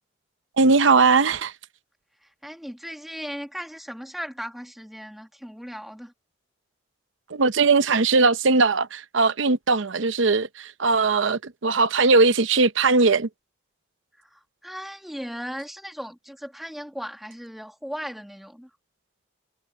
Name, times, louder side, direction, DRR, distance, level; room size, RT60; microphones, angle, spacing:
voice 1, 0.6-1.5 7.3-13.3, right 4 dB, 85° right, 0.8 m, -19 dB
voice 2, 2.2-6.1 14.3-18.7, equal, ahead, 1.8 m, -37 dB
head